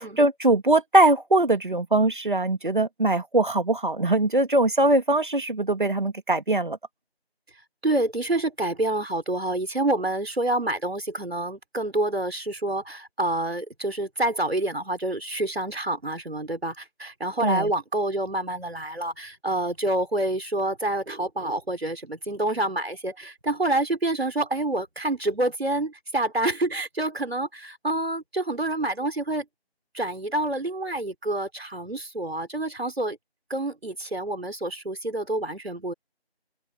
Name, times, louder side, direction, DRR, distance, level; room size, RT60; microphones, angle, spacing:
voice 1, 0.2-6.8 17.4-17.7, right 2 dB, 50° right, 2.6 m, -21 dB
voice 2, 7.8-29.4 29.9-33.2 33.5-35.9, right 1 dB, 70° right, 3.9 m, -27 dB
open air
figure-of-eight pair, 170°, 31 cm